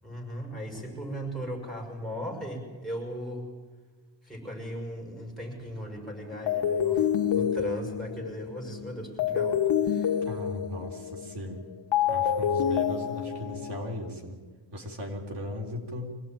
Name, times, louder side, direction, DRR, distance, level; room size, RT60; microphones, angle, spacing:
voice 1, 0.0-3.5 4.2-10.2, equal, ahead, -1 dB, 6.1 m, -37 dB
sound 1, 6.5-14.1, left 9 dB, 75° left, 1.1 m, -28 dB
voice 2, 10.2-11.6 12.1-14.4 14.7-16.1, left 1 dB, 60° right, 2 dB, 4.0 m, -37 dB
25.0 x 18.0 x 9.1 m, 1.4 s
wide cardioid pair, 140°, 46 cm